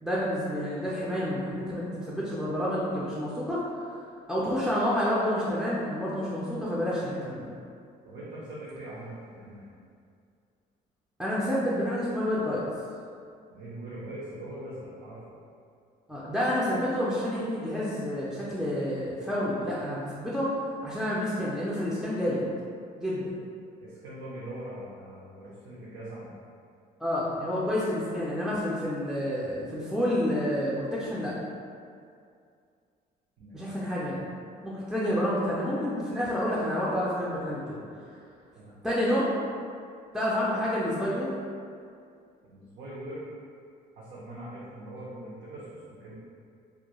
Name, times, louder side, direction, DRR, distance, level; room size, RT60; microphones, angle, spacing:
voice 1, 0.0-3.6 4.3-7.5 11.2-12.6 16.1-22.5 23.0-23.4 27.0-31.4 33.5-34.2 34.6-38.1 38.8-39.3 40.1-41.3, equal, ahead, -8 dB, 0.3 m, -29 dB
voice 2, 8.0-9.7 13.5-15.2 23.8-26.3 33.4-33.7 34.1-34.2 38.6-38.8 42.4-43.3 43.9-46.1, right 1 dB, 75° right, -9 dB, 0.6 m, -42 dB
2.3 x 2.1 x 2.9 m, 2.3 s
cardioid pair, 110°, 17 cm